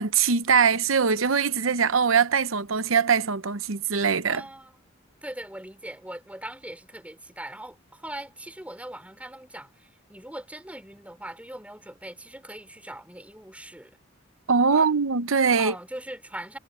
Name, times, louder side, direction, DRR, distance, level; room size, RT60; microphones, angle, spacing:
voice 1, 0.0-4.4 14.5-15.7, right 5 dB, 75° right, 0.9 m, -22 dB
voice 2, 4.3-4.7 5.2-14.0 14.7-14.9 15.5-16.6, right 1 dB, 5° right, 5.0 m, -40 dB
head